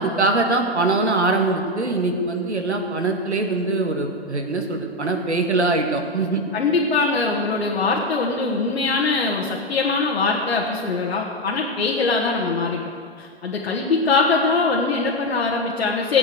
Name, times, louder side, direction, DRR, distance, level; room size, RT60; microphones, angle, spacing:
voice 1, 0.0-6.4, right 2 dB, 85° right, 4 dB, 2.1 m, -22 dB
voice 2, 6.5-12.8 13.2-16.2, left 4 dB, 65° left, -2 dB, 1.9 m, -22 dB
17.0 x 8.5 x 6.6 m, 2.2 s
figure-of-eight pair, 130°, 33 cm